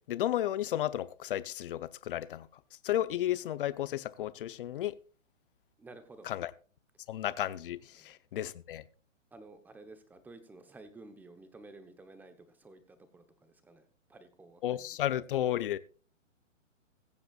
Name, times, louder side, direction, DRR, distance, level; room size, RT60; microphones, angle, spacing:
voice 1, 0.1-2.5 2.8-4.9 6.3-6.5 7.1-8.8 14.6-15.8, left 12 dB, 45° left, 0.8 m, -33 dB
voice 2, 5.8-6.3 7.9-8.1 9.3-13.8 14.1-15.0, right 2 dB, 5° right, 1.0 m, -53 dB
21.5 x 7.8 x 2.4 m
hypercardioid pair, 140°, 38 cm